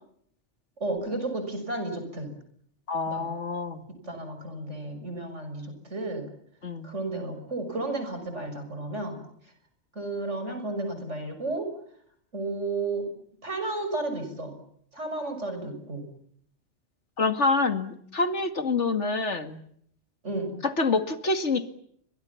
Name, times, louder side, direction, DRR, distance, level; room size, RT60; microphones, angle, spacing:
voice 1, 0.8-2.3 3.1-3.3 4.0-6.3 6.8-9.2 9.9-11.7 12.3-13.1 13.4-14.5 14.9-16.0 20.2-20.5, right 2 dB, 85° right, 7 dB, 6.8 m, -32 dB
voice 2, 2.9-3.8 6.6-6.9 17.2-19.6 20.6-21.7, left 3 dB, 75° left, 9 dB, 2.5 m, -26 dB
30.0 x 24.0 x 7.2 m, 0.68 s
omnidirectional pair, 1.2 m